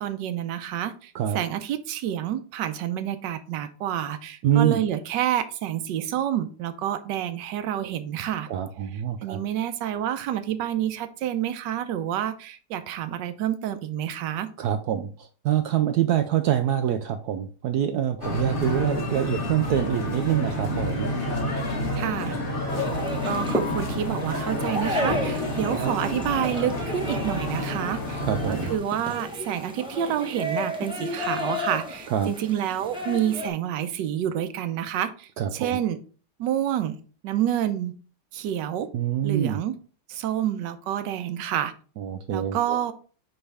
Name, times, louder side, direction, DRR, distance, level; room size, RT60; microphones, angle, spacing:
voice 1, 0.0-8.5 9.2-14.5 22.0-22.4 22.8-22.9 23.2-28.2 28.5-36.0 36.4-37.0 37.2-37.9 38.3-38.9 39.2-39.7 40.1-41.7 42.3-42.9, right 10 dB, 70° right, 10 dB, 1.2 m, -28 dB
voice 2, 4.4-4.8 8.5-9.4 14.6-21.1 25.7-25.9 28.2-28.7 32.1-32.3 35.4-35.8 38.9-39.6 42.0-42.8, right 10 dB, 90° right, 8 dB, 0.8 m, -25 dB
sound 1, 18.2-28.8, left 1 dB, 30° left, 1.4 m, -29 dB
sound 2, 22.7-33.5, left 1 dB, 5° right, 0.5 m, -33 dB
9.5 x 3.5 x 3.4 m, 0.40 s
omnidirectional pair, 2.2 m